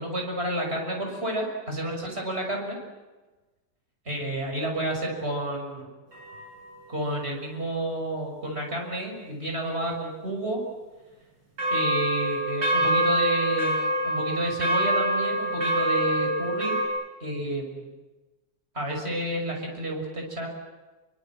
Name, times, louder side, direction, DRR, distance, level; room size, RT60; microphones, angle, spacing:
voice 1, 0.0-2.8 4.0-5.9 6.9-10.6 11.7-16.8 17.2-17.9 18.7-20.5, right 1 dB, 25° right, 2 dB, 6.6 m, -30 dB
sound 1, 6.1-6.7 11.6-16.9, right 1 dB, 60° right, 7.1 m, -25 dB
27.5 x 24.5 x 7.7 m, 1.2 s
omnidirectional pair, 2.4 m